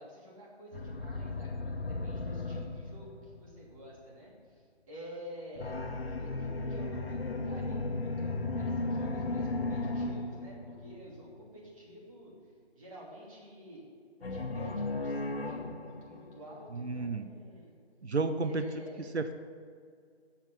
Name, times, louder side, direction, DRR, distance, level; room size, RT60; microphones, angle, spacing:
voice 1, 0.0-5.8 6.2-13.9 14.3-17.7 18.4-19.2, equal, 30° right, -4 dB, 2.9 m, -50 dB
sound 1, 0.7-3.8 5.5-11.3 14.2-16.6, left 2 dB, 65° left, 1.3 m, -35 dB
voice 2, 16.7-17.3 18.0-18.6 19.1-19.3, right 3 dB, 80° right, 9 dB, 0.9 m, -31 dB
8.1 x 7.3 x 7.4 m, 2.1 s
figure-of-eight pair, 160°, 32 cm